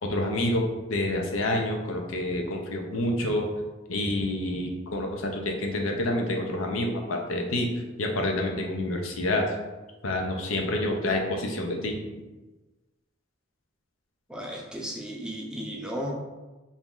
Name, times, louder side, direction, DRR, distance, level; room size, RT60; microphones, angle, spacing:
voice 1, 0.0-3.5 3.9-7.7 8.0-9.5 10.0-12.0, left 1 dB, 85° left, 2 dB, 0.6 m, -28 dB
voice 2, 14.3-16.1, equal, 5° right, -2 dB, 0.5 m, -34 dB
3.0 x 2.7 x 3.6 m, 1.2 s
head